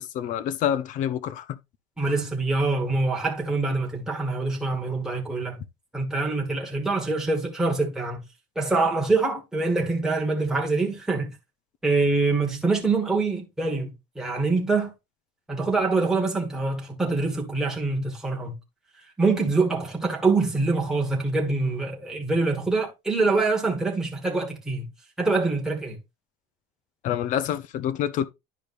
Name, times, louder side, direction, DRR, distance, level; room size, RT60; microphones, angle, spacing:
voice 1, 0.0-1.6 2.0-2.2 27.0-28.3, left 10 dB, 45° left, 0.7 m, -27 dB
voice 2, 2.0-5.6 5.9-8.2 8.5-11.3 11.8-14.9 15.5-18.6 19.2-24.9 25.2-26.0, right 3 dB, 5° right, 1.6 m, -25 dB
11.0 x 4.9 x 2.5 m
cardioid pair, 160°, 18 cm